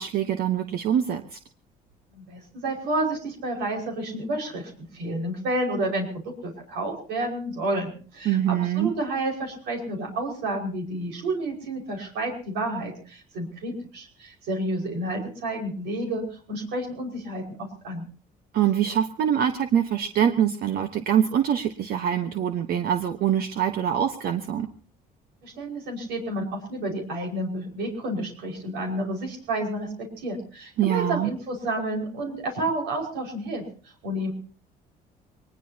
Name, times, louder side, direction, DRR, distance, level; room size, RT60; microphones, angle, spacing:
voice 1, 0.0-1.4 8.2-8.9 18.5-24.7 30.8-31.3, right 9 dB, 65° right, 7 dB, 1.2 m, -24 dB
voice 2, 2.1-18.1 25.4-34.3, right 1 dB, 85° right, 2 dB, 5.4 m, -30 dB
23.0 x 20.0 x 2.9 m, 0.40 s
cardioid pair, 110°, 17 cm